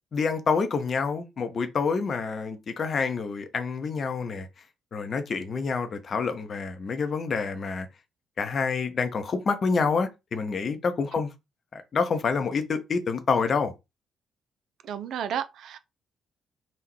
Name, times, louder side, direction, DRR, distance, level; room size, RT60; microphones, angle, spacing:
voice 1, 0.1-4.5 4.9-7.9 8.4-11.3 11.7-13.7, left 5 dB, 45° left, 0.7 m, -27 dB
voice 2, 14.8-15.8, right 9 dB, 60° right, 0.3 m, -32 dB
3.6 x 2.2 x 3.1 m
figure-of-eight pair, 45°, 0 cm